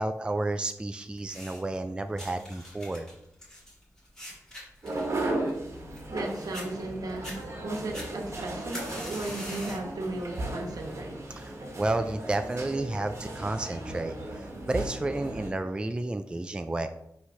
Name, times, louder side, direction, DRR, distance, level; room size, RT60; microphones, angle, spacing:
voice 1, 0.0-3.1 11.4-16.9, right 2 dB, 15° right, 0.3 m, -31 dB
sound 1, 1.2-1.8 2.2-6.2 6.5-6.7 7.1-7.4 7.9-9.9 10.4-10.7 11.5-11.6, equal, 10° left, 2.5 m, -42 dB
sound 2, 4.8-15.5, right 2 dB, 45° right, 1.2 m, -36 dB
voice 2, 6.1-11.3, right 2 dB, 75° right, 1.1 m, -35 dB
sound 3, 7.1-14.2, equal, 45° left, 1.6 m, -51 dB
5.8 x 3.2 x 5.5 m
wide cardioid pair, 135°, 6 cm